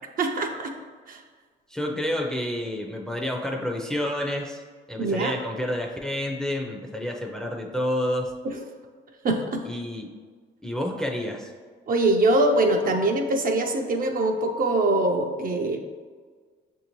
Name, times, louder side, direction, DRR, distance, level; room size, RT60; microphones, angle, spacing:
voice 1, 0.2-0.7 1.1-1.2 5.0-5.4 9.2-9.6 11.9-15.8, right 2 dB, 45° right, 3 dB, 0.5 m, -23 dB
voice 2, 1.7-4.6 4.9-8.3 9.6-10.1 10.6-11.5, left 1 dB, 5° left, 0 dB, 0.5 m, -29 dB
6.4 x 2.7 x 3.0 m, 1.5 s
cardioid pair, 90°, 20 cm